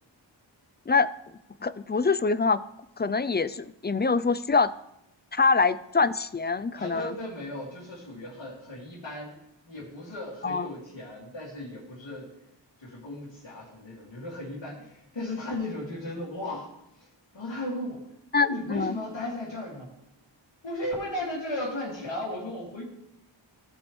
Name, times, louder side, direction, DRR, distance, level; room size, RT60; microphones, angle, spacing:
voice 1, 1.6-2.6 3.0-4.7 5.3-7.2 10.4-10.7 18.3-19.0, left 4 dB, 25° left, 15 dB, 0.4 m, -24 dB
voice 2, 6.7-9.4 9.7-12.3 12.8-16.7 17.3-18.1 18.4-19.9 20.6-22.8, left 1 dB, 75° left, -7 dB, 2.3 m, -36 dB
15.5 x 5.3 x 3.2 m, 0.82 s
wide cardioid pair, 40°, 46 cm